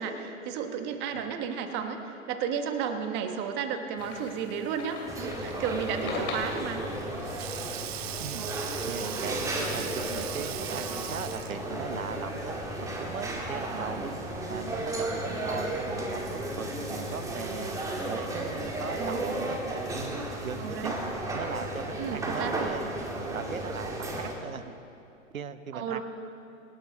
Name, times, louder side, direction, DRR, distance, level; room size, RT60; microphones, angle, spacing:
voice 1, 0.0-6.8 13.7-14.0 19.0-19.4 20.6-20.9 22.0-22.8 25.7-26.0, right 7 dB, 25° right, 6 dB, 1.3 m, -33 dB
sound 1, 4.0-19.4, left 3 dB, 25° left, 3.2 m, -46 dB
sound 2, 5.1-24.3, right 1 dB, 10° right, 1.8 m, -34 dB
Sink (filling or washing), 6.6-11.7, right 13 dB, 50° right, 0.6 m, -39 dB
voice 2, 8.9-14.1 14.5-17.8 18.1-19.6 19.9-21.0 21.3-22.8 23.3-24.7 25.3-26.0, right 7 dB, 85° right, 12 dB, 1.0 m, -39 dB
26.5 x 11.5 x 4.1 m, 2.7 s
hypercardioid pair, 130°, 40 cm